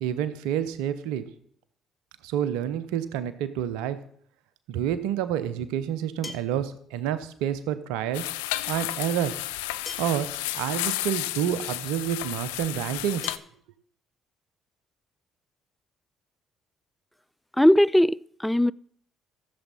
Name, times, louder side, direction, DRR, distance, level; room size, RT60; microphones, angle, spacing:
voice 1, 0.0-1.2 2.2-4.0 4.7-8.2 8.7-9.3 10.0-13.3, right 10 dB, 75° right, 0.7 m, -28 dB
sound 1, 4.5-4.6 6.2-6.7 8.2-8.3 9.9-10.3 11.5-11.6 13.2-13.4, left 3 dB, 30° left, 1.6 m, -40 dB
sound 2, 8.1-13.4, left 16 dB, 80° left, 0.4 m, -32 dB
voice 2, 17.6-18.7, left 1 dB, 5° left, 0.3 m, -19 dB
14.5 x 7.1 x 4.2 m
hypercardioid pair, 50°, 0 cm